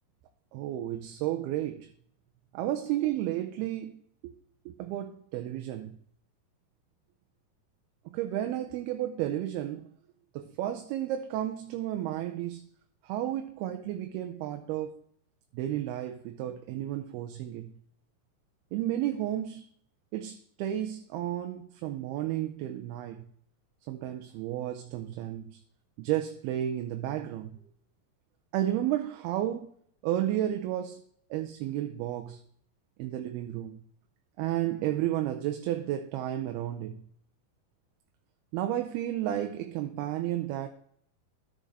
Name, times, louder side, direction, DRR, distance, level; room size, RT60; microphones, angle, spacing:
voice 1, 0.5-1.9 2.5-4.4 4.7-6.0 8.1-9.9 10.3-12.7 13.0-15.0 15.5-17.7 18.7-19.7 20.1-23.3 23.9-25.6 26.0-27.6 28.5-29.7 30.0-31.0 31.3-32.4 33.0-33.8 34.4-37.0 38.5-40.7, right 12 dB, 85° right, 2.6 m, -32 dB
13.0 x 6.4 x 4.1 m
omnidirectional pair, 4.4 m